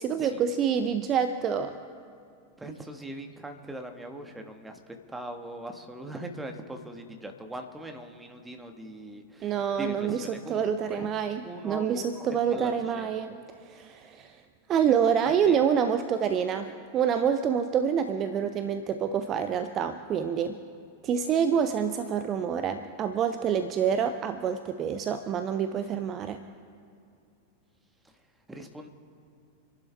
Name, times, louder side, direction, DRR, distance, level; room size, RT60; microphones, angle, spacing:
voice 1, 0.0-1.8 9.4-13.3 13.6-14.4 14.7-20.6 21.0-26.4, right 7 dB, 30° right, 10 dB, 0.7 m, -27 dB
voice 2, 2.6-11.1 11.4-13.4 15.2-15.6 28.5-28.9, right 1 dB, 10° right, 5 dB, 1.6 m, -41 dB
28.5 x 11.5 x 3.5 m, 2.3 s
figure-of-eight pair, 90°, 0 cm